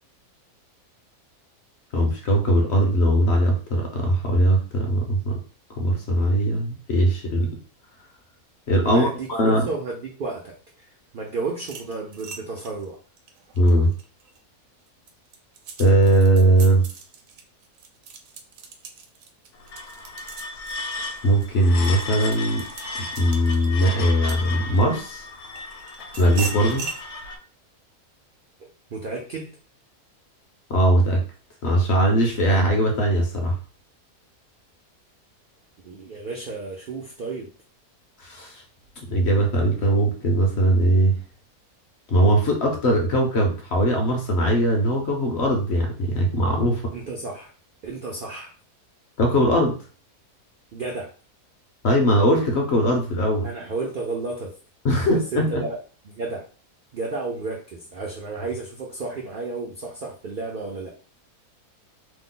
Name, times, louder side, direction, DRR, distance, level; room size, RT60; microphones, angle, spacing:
voice 1, 1.9-5.4 5.8-7.5 8.7-9.7 13.6-13.9 15.8-16.8 21.2-22.6 23.2-25.2 26.2-26.8 30.7-31.2 31.6-33.5 38.2-38.5 39.1-41.2 42.1-46.9 49.2-49.8 51.8-53.5 54.8-55.6, right 1 dB, 60° left, 1 dB, 0.7 m, -20 dB
voice 2, 8.8-10.6 11.1-13.0 28.9-29.5 35.8-37.5 46.9-47.5 47.8-48.5 50.7-51.1 53.4-54.5 55.1-55.8 56.0-56.4 56.9-60.9, right 3 dB, 90° right, -1 dB, 0.4 m, -32 dB
sound 1, 11.6-14.4 14.9-25.0 25.6-27.0, right 4 dB, 70° right, 0.9 m, -39 dB
sound 2, 19.5-27.4, left 3 dB, 85° left, 1.1 m, -35 dB
3.0 x 2.0 x 3.7 m, 0.38 s
omnidirectional pair, 1.6 m